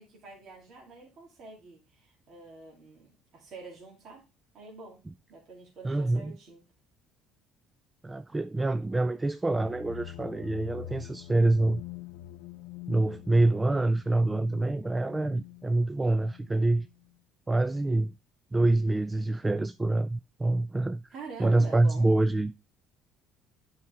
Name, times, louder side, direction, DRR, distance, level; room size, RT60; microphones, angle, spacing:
voice 1, 0.0-4.2 4.5-5.0 5.3-6.6 21.1-22.1, right 4 dB, 55° right, 2.4 m, -46 dB
voice 2, 5.8-6.4 8.0-11.8 12.9-16.9 17.5-18.1 18.5-21.0 21.4-22.7, right 2 dB, 15° right, 0.3 m, -26 dB
sound 1, 9.5-17.2, left 13 dB, 80° left, 0.7 m, -45 dB
8.7 x 4.8 x 3.5 m
cardioid pair, 100°, 0 cm